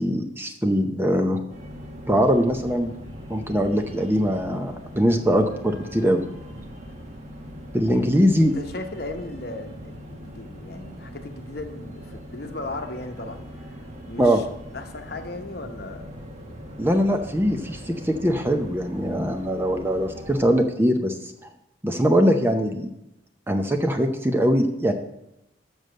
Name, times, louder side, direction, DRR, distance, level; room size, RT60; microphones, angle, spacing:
voice 1, 0.0-1.4 2.1-2.9 3.3-6.2 7.7-8.6 14.2-14.4 16.8-21.2 21.8-22.9 23.5-24.9, equal, 10° right, 5 dB, 0.6 m, -22 dB
sound 1, 1.5-20.5, equal, 35° right, 1.3 m, -40 dB
voice 2, 7.8-13.4 14.1-14.4 14.7-16.1, left 2 dB, 55° left, 6 dB, 0.9 m, -36 dB
7.1 x 6.4 x 7.6 m, 0.85 s
head